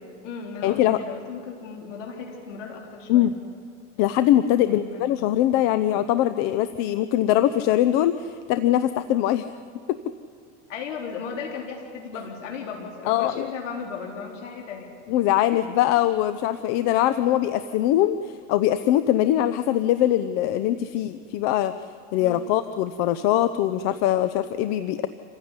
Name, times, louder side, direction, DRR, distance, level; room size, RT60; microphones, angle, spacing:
voice 1, 0.0-3.3 4.7-5.0 10.7-14.9 15.5-15.6 22.2-22.5, left 6 dB, 85° left, 0 dB, 4.0 m, -36 dB
voice 2, 0.6-1.0 3.1-3.3 4.0-9.5 9.9-10.0 13.1-13.5 15.1-21.7 22.1-25.1, left 12 dB, 45° left, 12 dB, 0.8 m, -22 dB
27.0 x 15.5 x 9.8 m, 2.3 s
supercardioid pair, 135°, 36 cm